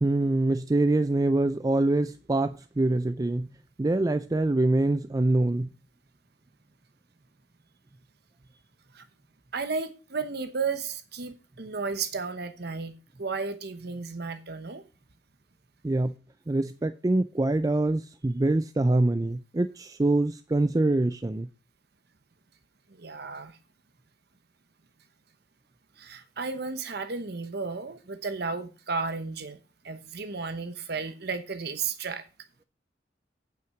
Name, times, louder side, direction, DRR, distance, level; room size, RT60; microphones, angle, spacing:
voice 1, 0.0-3.5 3.8-5.7 15.8-16.1 16.5-21.5, right 2 dB, 20° right, 0.4 m, -25 dB
voice 2, 9.5-14.8 22.9-23.6 26.0-29.6 29.8-32.2, right 4 dB, 60° right, 1.0 m, -33 dB
9.3 x 5.8 x 6.3 m
head